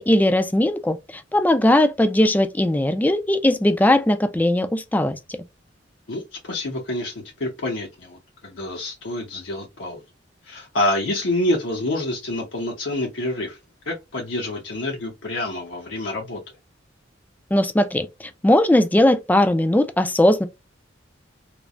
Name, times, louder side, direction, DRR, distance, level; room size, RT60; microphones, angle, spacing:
voice 1, 0.0-5.4 17.5-20.5, left 1 dB, 10° left, 0.3 m, -19 dB
voice 2, 6.1-10.0 10.4-13.6 13.8-16.4, left 1 dB, 75° left, 0.9 m, -27 dB
3.2 x 2.0 x 2.4 m
head